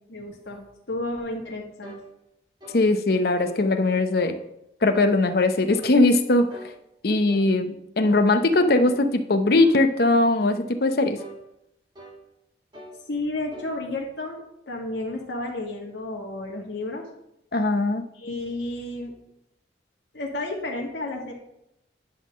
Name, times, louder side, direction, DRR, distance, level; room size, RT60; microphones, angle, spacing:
voice 1, 0.1-2.0 13.1-14.4 14.7-17.0 18.1-19.1 20.1-21.3, left 2 dB, 80° left, -1 dB, 1.7 m, -32 dB
sound 1, 1.8-2.1 2.6-2.8 3.4-3.6 4.2-4.4 4.9-5.2 5.7-6.0 6.5-6.8 7.3-7.5 8.1-8.3 8.8-9.1 9.6-9.8 10.4-10.7 11.2-11.4 12.0-12.2 12.7-13.0 13.5-13.7, right 1 dB, 25° right, 1.4 m, -43 dB
voice 2, 2.7-4.4 4.8-6.5 7.0-11.2 17.5-18.1, left 2 dB, 55° left, 8 dB, 0.7 m, -20 dB
11.0 x 3.7 x 6.2 m, 0.82 s
head